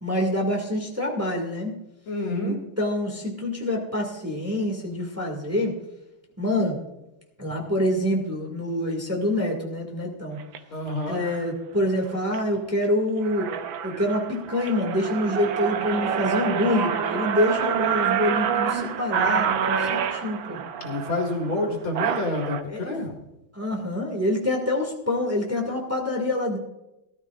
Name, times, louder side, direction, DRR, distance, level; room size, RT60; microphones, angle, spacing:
voice 1, 0.0-1.7 2.4-5.7 6.4-6.8 7.4-10.4 11.1-13.5 13.8-20.6 22.7-23.0 23.5-26.6, left 1 dB, 5° right, 0 dB, 1.9 m, -26 dB
voice 2, 2.1-2.5 10.7-11.2 20.8-23.1, left 2 dB, 75° left, 0 dB, 2.9 m, -28 dB
sound 1, 10.4-10.6 11.2-11.5 12.0-12.4 12.8-12.9 13.2-22.6, right 8 dB, 75° right, 1.6 m, -27 dB
18.5 x 12.5 x 2.5 m, 0.93 s
omnidirectional pair, 2.2 m